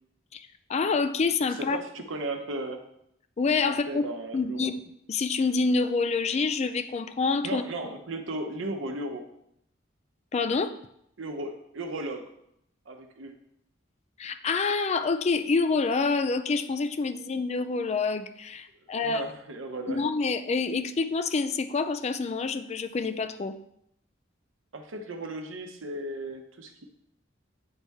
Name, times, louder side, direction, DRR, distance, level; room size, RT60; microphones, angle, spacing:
voice 1, 0.3-1.8 3.4-4.0 4.3-4.8 5.1-7.6 10.3-10.7 14.2-19.3 19.9-23.6, left 4 dB, 35° left, 10 dB, 0.4 m, -27 dB
voice 2, 1.5-2.8 3.6-4.7 7.4-9.3 11.2-12.3 12.9-13.3 18.9-20.0 24.7-26.8, right 2 dB, 85° right, 5 dB, 0.8 m, -36 dB
8.8 x 4.1 x 3.5 m, 0.75 s
head